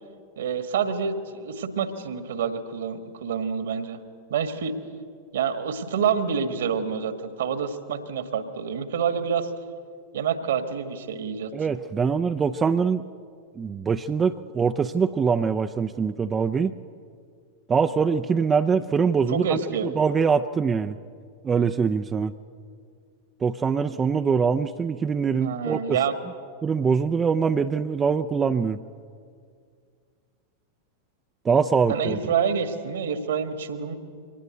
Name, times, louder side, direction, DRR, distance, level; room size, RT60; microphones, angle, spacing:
voice 1, 0.4-4.0 4.3-4.8 5.3-9.5 10.1-11.7 19.3-19.9 25.4-26.1 31.9-34.0, right 7 dB, 65° right, 10 dB, 1.8 m, -27 dB
voice 2, 11.5-13.0 13.6-16.7 17.7-21.0 21.4-22.3 23.4-26.0 26.6-28.8 31.4-32.2, right 5 dB, 20° right, 7 dB, 0.6 m, -23 dB
23.5 x 19.0 x 8.3 m, 2.2 s
figure-of-eight pair, 90°, 0 cm